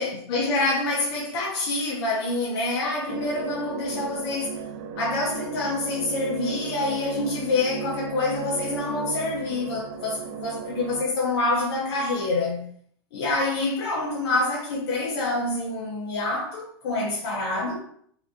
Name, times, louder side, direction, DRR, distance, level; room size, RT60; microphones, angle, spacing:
voice 1, 0.0-4.6 5.0-12.7 13.1-17.8, left 2 dB, 65° left, 1.0 m, -26 dB
sound 1, 3.1-11.0, right 6 dB, 60° right, 0.5 m, -36 dB
5.1 x 3.3 x 2.5 m
hypercardioid pair, 110°, 14 cm